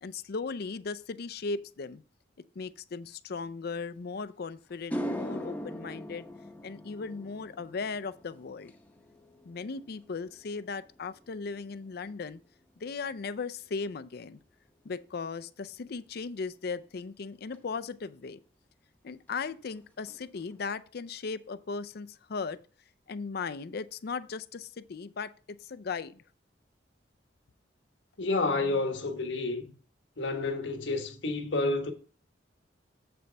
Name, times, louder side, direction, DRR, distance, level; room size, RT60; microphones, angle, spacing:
voice 1, 0.0-2.0 2.6-6.2 6.6-8.7 9.4-12.4 12.8-14.4 14.8-18.4 19.0-22.6 23.1-26.2, left 4 dB, 60° left, 0.5 m, -37 dB
sound 1, 4.2-4.3 4.7-13.2 13.5-13.9 17.5-17.6 19.3-19.4 19.7-19.8 20.1-20.6, equal, 10° left, 0.9 m, -42 dB
voice 2, 28.2-29.7 30.2-31.9, left 3 dB, 80° left, 1.3 m, -30 dB
7.7 x 6.8 x 3.4 m
head